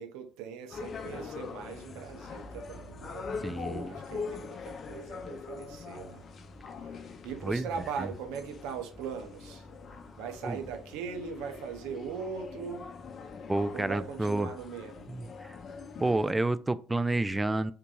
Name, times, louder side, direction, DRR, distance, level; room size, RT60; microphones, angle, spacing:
voice 1, 0.0-6.3 6.7-7.0 7.2-9.7 10.2-12.9 13.7-15.1, right 7 dB, 75° right, 0.5 m, -40 dB
sound 1, 0.7-16.3, left 5 dB, 50° left, 0.5 m, -43 dB
voice 2, 3.4-4.0 7.4-7.6 10.4-10.6 13.5-14.5 15.4-15.6 16.0-17.7, right 2 dB, 15° right, 0.3 m, -29 dB
3.7 x 2.8 x 2.3 m
hypercardioid pair, 55°, 0 cm